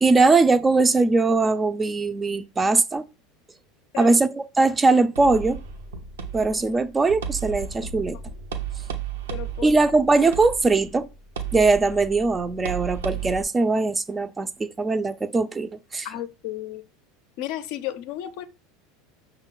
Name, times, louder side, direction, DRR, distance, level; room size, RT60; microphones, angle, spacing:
voice 1, 0.0-3.0 4.0-5.6 6.3-8.2 9.6-11.1 11.5-16.1, right 3 dB, 20° right, 0.4 m, -21 dB
sound 1, 5.2-13.4, right 7 dB, 85° right, 0.6 m, -34 dB
voice 2, 9.3-9.8 16.0-16.8 17.4-18.5, left 13 dB, 65° left, 0.5 m, -33 dB
5.6 x 2.2 x 3.7 m
hypercardioid pair, 85°, 0 cm